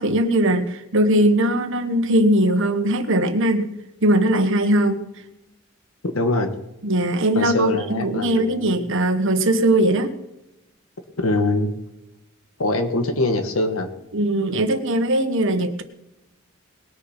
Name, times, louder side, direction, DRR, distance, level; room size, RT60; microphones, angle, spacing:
voice 1, 0.0-3.7 4.0-5.0 6.8-10.1 14.1-15.8, right 1 dB, 65° right, 9 dB, 1.3 m, -20 dB
voice 2, 6.1-6.5 7.3-8.7 11.2-11.7 12.6-13.9, left 2 dB, 90° left, 7 dB, 1.4 m, -22 dB
20.0 x 6.8 x 5.7 m, 0.94 s
head